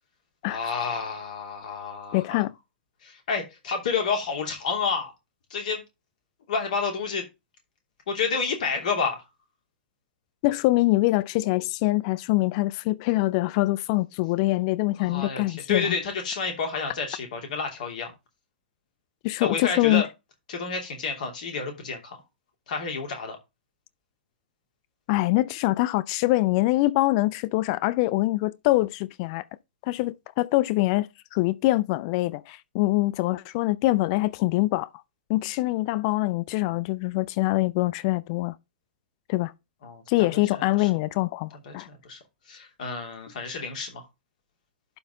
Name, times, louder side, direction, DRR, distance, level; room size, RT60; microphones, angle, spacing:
voice 1, 0.4-2.4 3.0-5.1 5.5-5.8 6.5-7.3 8.1-9.2 14.9-18.1 19.4-20.1 20.5-22.2 22.7-23.4 39.8-40.9 41.6-42.2 42.5-44.0, left 5 dB, 50° left, 2.9 m, -30 dB
voice 2, 2.1-2.5 10.4-15.9 19.2-20.0 25.1-29.4 29.9-34.9 35.3-38.5 39.3-39.5 40.1-41.9, left 19 dB, 35° left, 0.4 m, -24 dB
11.5 x 4.2 x 3.8 m
figure-of-eight pair, 105°, 5 cm